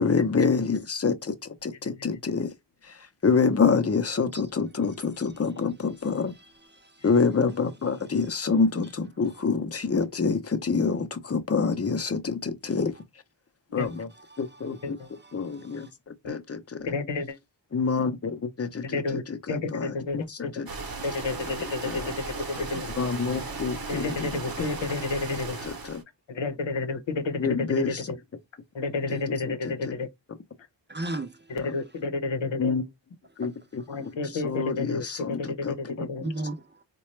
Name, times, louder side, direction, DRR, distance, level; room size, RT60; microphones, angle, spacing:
voice 1, 0.0-1.3 1.6-2.5 2.8-6.3 7.0-12.9 13.7-14.1 14.4-15.0 15.3-15.9 16.3-16.9 17.7-20.7 21.8-22.1 23.0-24.3 25.6-26.0 27.4-28.0 29.1-29.4 29.8-29.9 31.6-31.7 32.6-32.8 33.4-34.1 34.4-36.1, left 5 dB, 35° left, 0.6 m, -27 dB
voice 2, 6.7-7.0 14.3-14.7 15.2-15.9 30.9-31.5 36.2-36.8, right 2 dB, 25° right, 0.5 m, -36 dB
voice 3, 16.8-17.4 18.8-20.5 21.0-22.9 23.9-25.6 26.3-28.2 28.7-30.1 31.5-32.8 33.9-36.3, left 3 dB, 85° left, 0.8 m, -31 dB
sound 1, 20.7-26.0, right 3 dB, 55° right, 0.9 m, -36 dB
4.0 x 2.2 x 3.1 m
wide cardioid pair, 80°, 43 cm